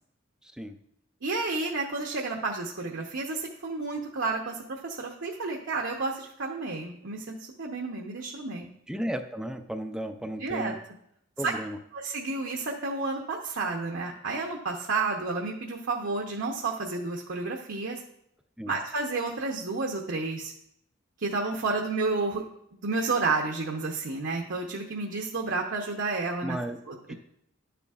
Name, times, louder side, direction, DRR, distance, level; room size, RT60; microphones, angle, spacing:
voice 1, 0.4-0.8 8.9-10.8 11.4-11.8 18.6-18.8 26.4-26.8 27.1-27.2, equal, 5° right, 7 dB, 0.4 m, -34 dB
voice 2, 1.2-8.7 10.4-10.7 11.4-11.5 11.9-18.0 18.7-20.5 21.2-22.4 22.7-26.6 26.9-27.1, right 3 dB, 70° right, 0 dB, 0.8 m, -31 dB
11.0 x 6.9 x 2.4 m, 0.75 s
head